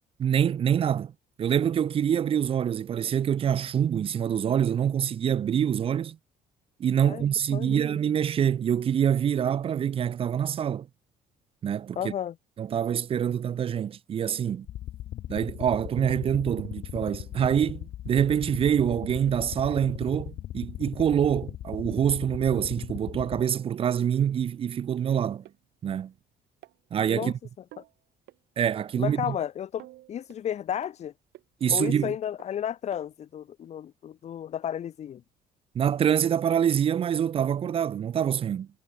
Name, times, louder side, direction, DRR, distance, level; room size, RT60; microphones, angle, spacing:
voice 1, 0.2-1.1 1.4-6.2 6.8-10.9 11.6-12.0 12.6-14.7 15.3-25.4 25.8-26.1 26.9-27.3 28.6-29.4 31.6-32.1 35.7-38.7, right 9 dB, 35° right, 0.4 m, -25 dB
voice 2, 12.0-12.3 27.1-27.3 29.0-31.1 31.7-35.2, left 9 dB, 40° left, 0.6 m, -33 dB
sound 1, 14.6-23.4, left 12 dB, 60° left, 1.2 m, -38 dB
sound 2, 25.4-25.5 26.6-27.3 27.7-27.9 28.3-28.4 28.8-28.9 29.3-29.4 29.8-30.4 30.8-30.9 31.3-31.4 31.8-32.0 32.4-32.5 32.9-33.0 33.6-33.7, right 17 dB, 80° right, 2.4 m, -50 dB
cardioid pair, 110°, 17 cm